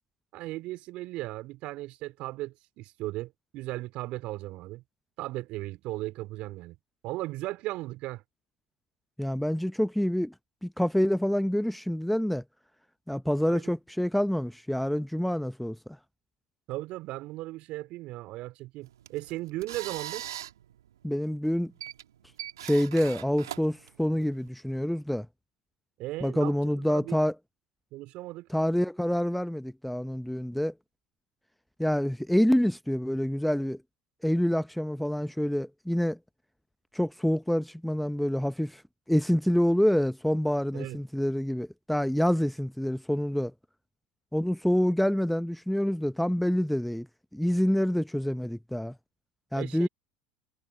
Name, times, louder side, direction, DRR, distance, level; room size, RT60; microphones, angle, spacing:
voice 1, 0.3-4.8 5.2-6.8 7.0-8.2 13.5-13.7 16.7-20.2 26.0-27.2 27.9-28.5 40.7-41.0 49.6-49.9, right 18 dB, 60° right, 3.7 m, -37 dB
voice 2, 9.2-10.3 10.6-12.4 13.1-15.8 21.0-21.7 22.6-25.3 26.2-27.3 28.5-30.7 31.8-33.8 34.2-36.2 36.9-38.8 39.1-43.5 44.3-47.1 47.3-48.9 49.5-49.9, equal, ahead, 0.7 m, -27 dB
sound 1, 18.8-24.5, right 12 dB, 85° right, 2.6 m, -42 dB
hypercardioid pair, 75°, 2 cm